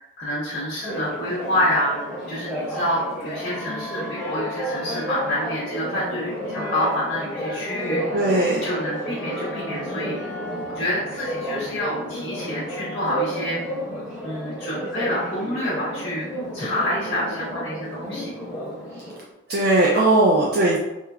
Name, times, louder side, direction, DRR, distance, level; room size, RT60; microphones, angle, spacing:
voice 1, 0.0-8.0 8.6-10.1 10.7-13.6 14.2-16.2 16.5-18.3, left 1 dB, 50° left, -11 dB, 0.7 m, -27 dB
Church bell, 0.8-19.2, equal, ahead, 0.9 m, -31 dB
voice 2, 8.1-8.6 19.5-20.8, right 2 dB, 50° right, -4 dB, 0.3 m, -18 dB
3.0 x 2.0 x 2.3 m, 0.97 s
head